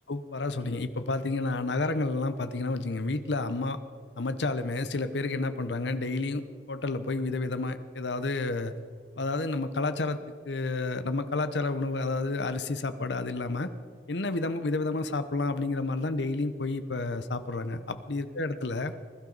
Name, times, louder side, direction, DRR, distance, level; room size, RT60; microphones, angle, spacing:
voice 1, 0.1-3.8 4.2-8.7 9.2-10.2 10.4-13.7 14.1-18.9, left 3 dB, 85° left, 11 dB, 0.8 m, -30 dB
20.5 x 12.0 x 4.0 m, 2.1 s
head